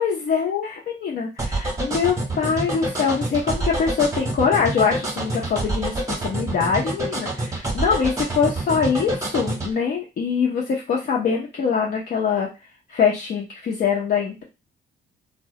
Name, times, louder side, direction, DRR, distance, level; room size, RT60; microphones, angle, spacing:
voice 1, 0.0-12.5 12.9-14.4, left 6 dB, 50° left, -2 dB, 0.6 m, -23 dB
sound 1, 1.4-9.7, right 2 dB, 15° right, 0.8 m, -26 dB
2.2 x 2.0 x 2.7 m, 0.27 s
cardioid pair, 90°, 20 cm